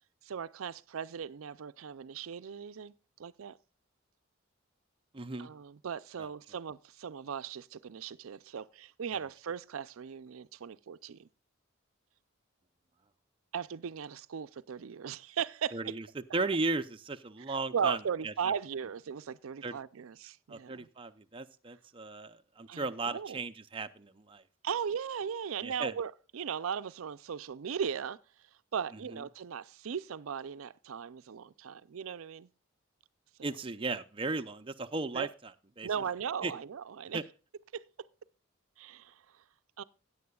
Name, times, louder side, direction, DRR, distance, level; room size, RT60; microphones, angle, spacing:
voice 1, 0.2-2.9 3.2-3.6 5.4-11.3 13.5-15.9 17.5-20.9 22.7-23.4 24.6-28.2 28.7-32.5 35.1-35.3 35.8-37.2 37.7-37.9 38.8-39.2 39.8-39.9, right 7 dB, 85° right, 0.5 m, -37 dB
voice 2, 5.1-5.5 6.2-6.3 15.7-16.0 16.3-18.0 18.2-18.3 19.6-19.8 20.5-24.4 25.6-26.0 33.4-35.3 35.8-35.9 36.4-36.5 37.1-37.2, right 3 dB, 25° right, 0.6 m, -35 dB
16.5 x 9.3 x 2.3 m
head